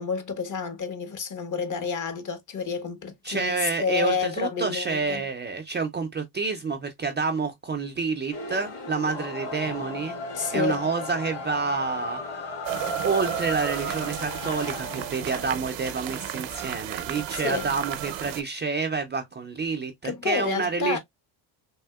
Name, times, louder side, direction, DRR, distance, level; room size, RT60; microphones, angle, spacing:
voice 1, 0.0-5.2 10.3-10.9 17.3-17.7 20.0-21.0, left 5 dB, 40° left, 0.9 m, -29 dB
voice 2, 3.2-10.2 10.5-12.2 13.0-21.0, right 4 dB, 25° right, 0.4 m, -28 dB
sound 1, 8.3-15.5, left 3 dB, 55° left, 2.0 m, -36 dB
sound 2, 12.6-18.4, right 12 dB, 70° right, 0.7 m, -33 dB
3.5 x 2.7 x 2.2 m
cardioid pair, 105°, 47 cm